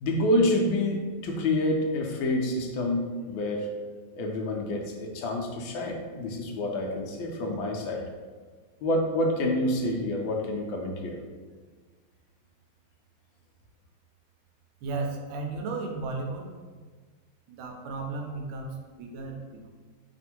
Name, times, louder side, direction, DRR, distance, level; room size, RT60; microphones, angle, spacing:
voice 1, 0.0-3.7 4.2-8.0 8.8-11.2, left 1 dB, 80° left, 1 dB, 1.3 m, -28 dB
voice 2, 14.8-16.5 17.5-19.7, right 3 dB, 85° right, 2 dB, 1.4 m, -34 dB
3.5 x 2.5 x 4.3 m, 1.4 s
omnidirectional pair, 2.2 m